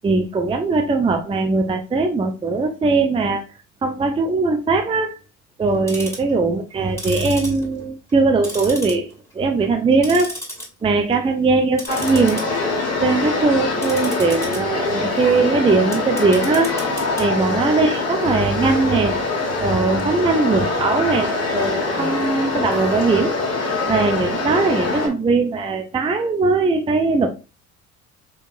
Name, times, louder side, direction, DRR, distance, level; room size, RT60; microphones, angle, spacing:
voice 1, 0.0-3.4 3.8-5.2 5.6-10.4 10.8-12.4 13.0-16.7 17.2-19.2 19.6-23.4 23.9-27.3, right 3 dB, 15° right, 0.6 m, -20 dB
Tick-tock, 5.7-6.3 6.9-8.2 8.4-9.3 9.6-10.7 11.0-11.3 11.7-25.1, left 1 dB, 5° left, 2.2 m, -35 dB
sound 1, 11.9-25.1, left 3 dB, 35° left, 1.8 m, -24 dB
4.9 x 3.8 x 2.6 m
figure-of-eight pair, 60°, 41 cm